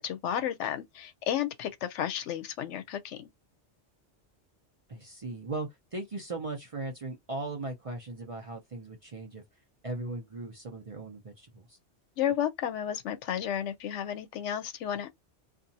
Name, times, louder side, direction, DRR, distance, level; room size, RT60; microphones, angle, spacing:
voice 1, 0.0-3.2 12.2-15.1, left 10 dB, 85° left, 0.9 m, -32 dB
voice 2, 4.9-9.4 9.8-11.8, right 2 dB, 40° right, 0.5 m, -38 dB
2.7 x 2.4 x 2.6 m
omnidirectional pair, 1.2 m